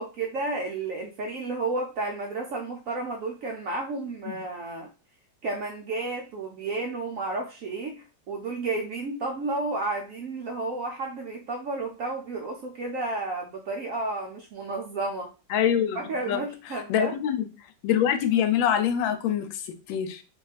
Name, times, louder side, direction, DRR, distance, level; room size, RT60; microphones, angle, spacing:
voice 1, 0.0-4.9 5.4-15.3 15.9-17.1, right 3 dB, 80° right, 0.7 m, -32 dB
voice 2, 15.5-16.4 16.7-17.5 17.8-20.2, left 9 dB, 90° left, 1.3 m, -25 dB
2.9 x 2.4 x 4.0 m
omnidirectional pair, 2.0 m